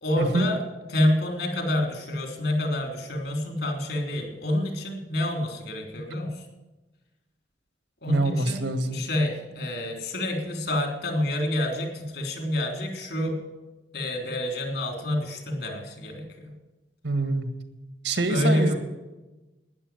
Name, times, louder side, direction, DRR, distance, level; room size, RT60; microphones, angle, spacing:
voice 1, 0.0-0.6 0.9-6.5 8.0-8.7 8.9-13.4 13.9-16.5 18.3-18.8, left 1 dB, 65° left, 3 dB, 3.6 m, -27 dB
voice 2, 8.1-9.0 17.0-17.5 18.0-18.8, right 2 dB, 80° right, 8 dB, 1.8 m, -25 dB
12.5 x 10.0 x 9.3 m, 1.1 s
head